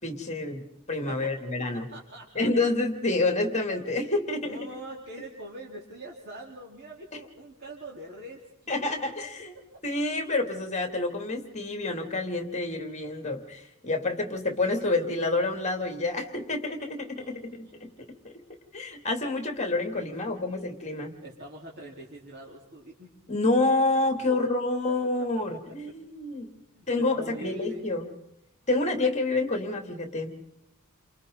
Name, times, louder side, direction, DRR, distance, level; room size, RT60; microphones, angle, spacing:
voice 1, 0.0-1.9 2.3-4.6 8.7-9.5 9.8-17.9 18.2-18.3 18.7-21.1 23.3-26.5 26.9-28.1 28.7-30.3, left 2 dB, 30° left, 4 dB, 2.8 m, -28 dB
voice 2, 1.9-2.5 4.4-9.0 17.2-17.4 19.7-20.2 21.2-23.1 24.3-24.5 25.2-25.6 26.7-27.9, equal, 50° right, -3 dB, 3.9 m, -43 dB
30.0 x 27.0 x 4.0 m, 0.82 s
head